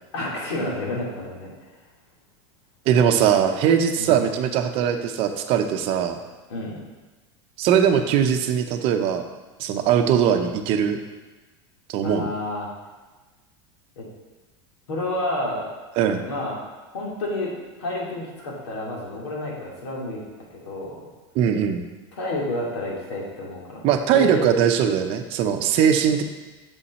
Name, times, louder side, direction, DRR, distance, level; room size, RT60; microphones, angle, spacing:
voice 1, 0.1-1.5 4.0-4.2 6.5-6.8 12.0-12.7 14.0-14.1 14.9-15.7 16.2-16.6 16.9-17.5 17.8-20.2 20.5-21.0 22.2-23.8 24.1-24.4, left 2 dB, 85° left, -3 dB, 2.6 m, -29 dB
voice 2, 2.9-6.2 7.6-9.2 9.6-11.0 11.9-12.3 16.0-16.2 21.3-21.8 23.8-26.2, right 8 dB, 45° right, 6 dB, 0.7 m, -20 dB
7.2 x 5.6 x 4.2 m, 1.2 s
supercardioid pair, 140°, 14 cm